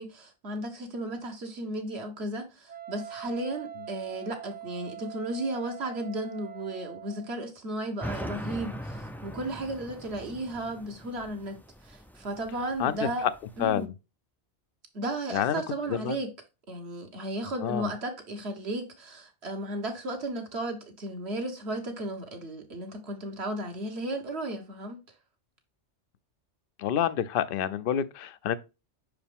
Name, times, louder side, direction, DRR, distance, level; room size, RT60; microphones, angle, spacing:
voice 1, 0.0-11.5 11.8-13.3 13.6-13.9 14.9-16.3 16.7-25.0, right 1 dB, 65° right, 1.6 m, -34 dB
Wind instrument woodwind instrument, 2.7-7.4, right 11 dB, 50° right, 0.5 m, -43 dB
sound 1, 8.0-13.8, equal, 5° left, 0.3 m, -41 dB
voice 2, 13.6-13.9 15.3-15.6 15.9-16.2 17.6-17.9 26.8-28.6, left 9 dB, 60° left, 0.7 m, -28 dB
5.9 x 4.9 x 3.5 m
omnidirectional pair, 1.2 m